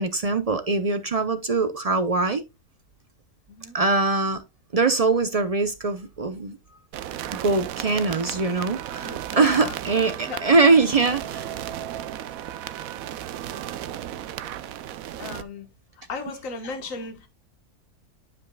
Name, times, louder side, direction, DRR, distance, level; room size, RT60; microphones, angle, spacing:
voice 1, 0.0-2.4 3.7-4.4 4.7-6.6 7.3-11.5, right 3 dB, 55° right, 0.4 m, -22 dB
sound 1, 6.9-15.4, right 11 dB, 70° right, 1.0 m, -34 dB
voice 2, 9.0-9.7 10.3-10.4 15.2-15.7 16.1-17.3, left 4 dB, 60° left, 1.6 m, -35 dB
12.0 x 5.3 x 2.2 m
omnidirectional pair, 1.6 m